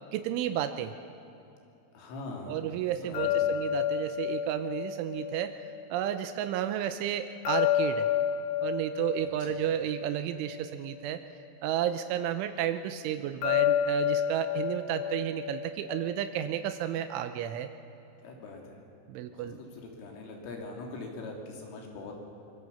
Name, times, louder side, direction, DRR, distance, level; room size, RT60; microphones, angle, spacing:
voice 1, 0.1-0.9 2.5-5.6 5.9-8.1 8.6-11.2 11.6-17.7 19.1-19.6, right 10 dB, 85° right, 9 dB, 3.2 m, -32 dB
voice 2, 1.9-3.5 9.4-9.6 18.2-18.8 19.3-22.1, left 3 dB, 85° left, 1 dB, 5.8 m, -43 dB
sound 1, 3.1-6.2 7.5-11.0 13.4-16.5, left 9 dB, 65° left, 2.9 m, -30 dB
24.5 x 23.5 x 7.1 m, 2.9 s
omnidirectional pair, 5.6 m